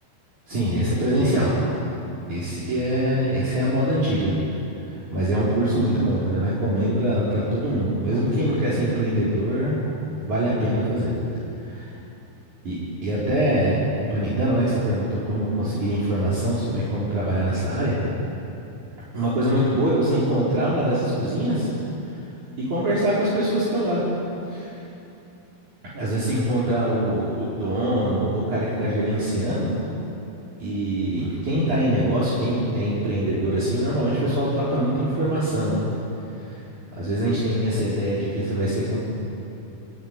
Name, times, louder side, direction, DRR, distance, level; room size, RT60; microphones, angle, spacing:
voice 1, 0.5-1.5 2.3-4.3 4.9-9.8 10.2-11.1 11.6-11.9 12.6-17.9 19.1-21.7 22.7-24.0 24.5-24.8 25.9-29.7 30.6-35.8 36.3-36.6 37.0-39.0, right 1 dB, 50° right, -8 dB, 6.0 m, -23 dB
25.5 x 19.0 x 10.0 m, 2.8 s
omnidirectional pair, 4.4 m